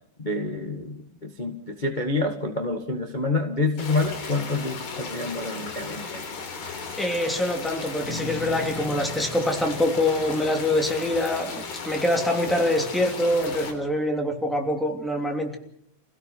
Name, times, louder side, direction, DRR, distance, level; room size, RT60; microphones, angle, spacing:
voice 1, 0.2-6.3, left 3 dB, 55° left, 3 dB, 0.5 m, -28 dB
sound 1, 3.8-13.7, left 4 dB, 85° left, 5.2 m, -36 dB
voice 2, 7.0-15.6, left 1 dB, ahead, 2 dB, 2.4 m, -25 dB
Bass guitar, 8.1-12.5, left 3 dB, 35° left, 6.3 m, -39 dB
29.0 x 17.0 x 6.1 m, 0.70 s
omnidirectional pair, 4.4 m